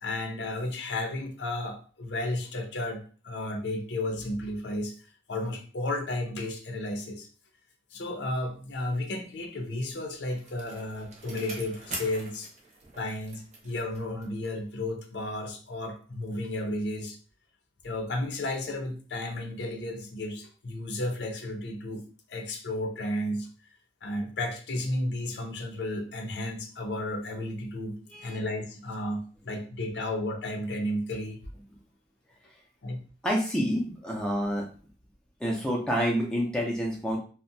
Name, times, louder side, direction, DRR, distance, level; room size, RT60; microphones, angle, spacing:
voice 1, 0.0-4.9 5.3-7.3 7.9-12.5 13.0-17.2 17.8-23.5 24.0-31.4 32.8-33.0, left 1 dB, 90° left, 3 dB, 0.6 m, -33 dB
Bicycle, 9.6-14.5 14.8-14.9, right 2 dB, 40° right, 0.6 m, -44 dB
voice 2, 33.2-34.7 35.4-37.2, equal, 5° left, -2 dB, 0.4 m, -28 dB
2.6 x 2.1 x 2.6 m, 0.38 s
head